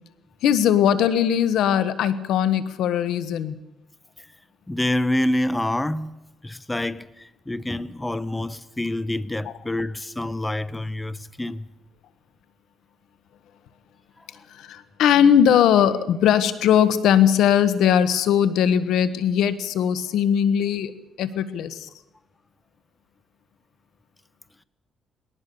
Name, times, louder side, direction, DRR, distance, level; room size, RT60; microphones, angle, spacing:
voice 1, 0.4-3.5 14.7-20.9 21.2-21.8, left 9 dB, 85° left, 1.3 m, -19 dB
voice 2, 4.7-11.7 14.2-14.4, left 1 dB, 10° left, 0.8 m, -27 dB
20.0 x 19.0 x 6.9 m
cardioid pair, 90°, 0 cm